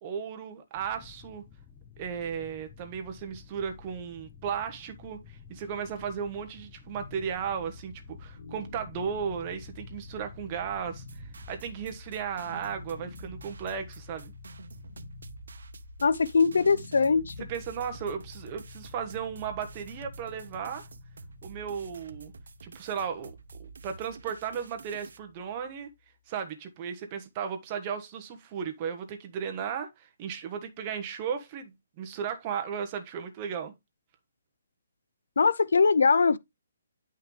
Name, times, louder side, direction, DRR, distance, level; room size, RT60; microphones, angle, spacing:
voice 1, 0.0-1.4 2.0-7.9 8.2-14.3 17.5-20.9 21.4-22.3 22.6-23.3 23.8-25.9 26.3-33.7, right 7 dB, 20° right, 1.2 m, -35 dB
sound 1, 0.7-12.0, left 7 dB, 15° left, 0.6 m, -52 dB
sound 2, 6.8-25.9, left 4 dB, 55° left, 1.3 m, -48 dB
sound 3, 11.0-25.2, right 5 dB, 70° right, 0.9 m, -49 dB
voice 2, 16.0-17.5 35.4-36.4, left 5 dB, 75° left, 0.6 m, -22 dB
10.0 x 5.8 x 3.2 m
hypercardioid pair, 175°, 0 cm